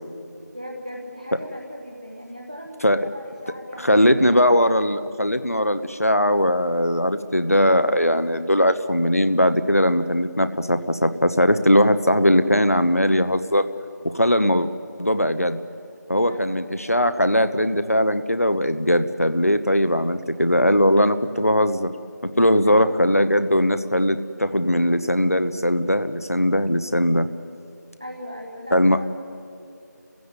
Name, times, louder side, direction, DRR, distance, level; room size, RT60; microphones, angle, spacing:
voice 1, 0.5-4.6 16.3-16.9 22.6-22.9 28.0-29.1, equal, 25° right, 0 dB, 1.3 m, -38 dB
voice 2, 3.8-13.7 14.0-14.7 15.0-15.6 16.1-21.9 22.2-27.3 28.7-29.0, equal, 50° left, 10 dB, 1.0 m, -20 dB
28.0 x 16.0 x 9.5 m, 2.7 s
figure-of-eight pair, 180°, 10 cm